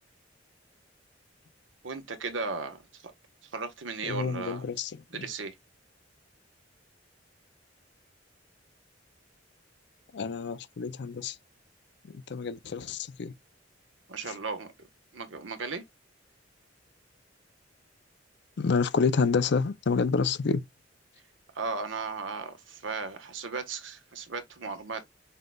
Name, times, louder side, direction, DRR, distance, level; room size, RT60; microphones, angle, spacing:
voice 1, 1.8-2.8 3.0-3.1 3.5-4.7 5.1-5.5 14.1-14.7 15.1-15.8 21.5-25.1, right 4 dB, 85° right, 1.2 m, -36 dB
voice 2, 4.0-4.9 10.1-11.3 12.3-13.3 18.6-20.6, left 5 dB, 65° left, 0.5 m, -28 dB
5.6 x 3.8 x 2.3 m
head